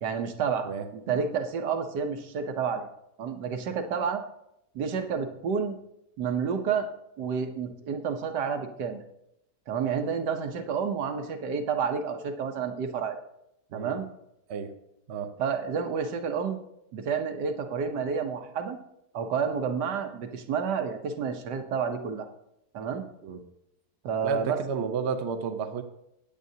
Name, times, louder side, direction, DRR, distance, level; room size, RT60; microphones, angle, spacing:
voice 1, 0.0-2.9 3.2-4.2 4.7-5.8 6.2-6.9 7.2-9.0 9.7-13.2 13.7-14.1 15.4-16.6 16.9-18.8 19.1-22.3 22.7-23.0 24.0-24.6, right 6 dB, 80° right, 6 dB, 1.5 m, -30 dB
voice 2, 0.6-1.2 13.7-14.0 14.5-14.7 15.1-15.4 23.2-23.4 24.2-25.8, right 6 dB, 50° right, 7 dB, 0.9 m, -32 dB
15.0 x 9.2 x 2.8 m, 0.80 s
omnidirectional pair, 1.8 m